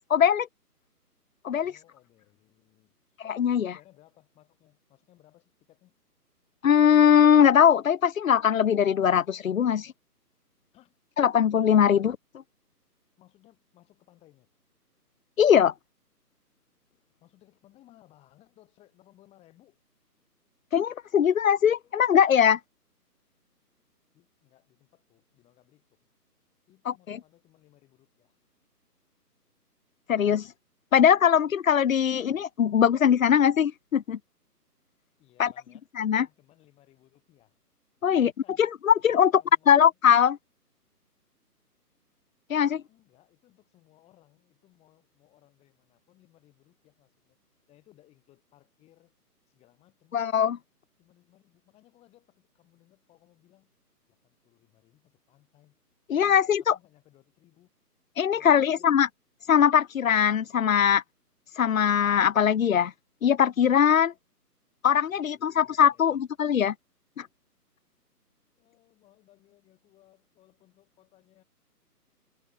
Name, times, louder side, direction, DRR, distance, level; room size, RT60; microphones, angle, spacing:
voice 1, 0.1-0.5 1.4-1.7 3.2-3.7 6.6-9.9 11.2-12.1 15.4-15.7 20.7-22.6 26.9-27.2 30.1-30.5 30.9-34.2 35.4-35.5 36.0-36.3 38.0-38.3 38.6-39.3 39.7-40.4 42.5-42.8 50.1-50.6 56.1-56.7 58.2-59.1 59.5-61.0 61.6-62.9 63.2-64.1 64.8-66.7 67.2-67.3, left 8 dB, 60° left, 0.5 m, -21 dB
voice 2, 1.5-3.2 3.6-6.0 10.7-11.0 11.9-12.1 13.2-14.5 17.2-19.8 24.1-26.0 26.7-28.4 35.2-37.6 38.0-38.7 39.4-40.0 42.9-47.4 47.7-49.1 49.5-50.2 51.0-53.7 54.1-55.8 56.2-57.7 58.3-59.1 65.0-66.2 68.6-71.4, left 15 dB, 10° left, 7.3 m, -62 dB
figure-of-eight pair, 155°, 48 cm